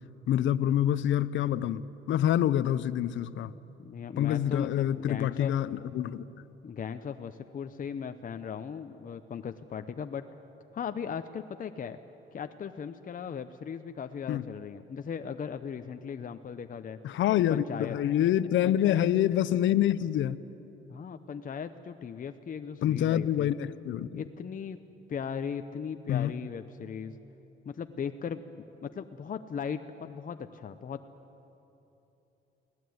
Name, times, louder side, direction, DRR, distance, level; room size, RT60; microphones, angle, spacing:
voice 1, 0.3-3.5 4.2-6.3 14.3-14.4 17.0-20.4 22.8-24.2 26.1-26.3, left 11 dB, 75° left, 0.7 m, -26 dB
voice 2, 3.8-5.5 6.6-10.2 10.7-12.0 12.3-17.0 17.5-18.0 18.6-19.1 20.9-23.5 24.1-24.8 25.1-27.1 27.6-28.4 28.8-31.0, left 7 dB, 45° left, 0.9 m, -38 dB
23.5 x 18.0 x 9.5 m
cardioid pair, 90°, 20 cm